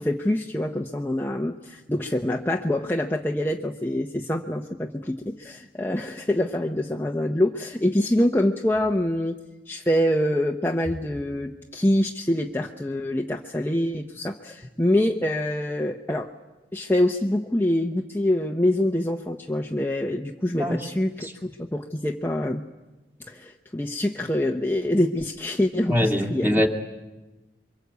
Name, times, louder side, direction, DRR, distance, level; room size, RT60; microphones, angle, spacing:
voice 1, 0.0-9.4 9.7-16.3 16.7-22.6 23.3-26.6, left 1 dB, 15° left, 2 dB, 1.0 m, -25 dB
voice 2, 25.9-26.7, equal, 10° right, 2 dB, 2.5 m, -22 dB
28.0 x 24.0 x 8.3 m, 1.1 s
head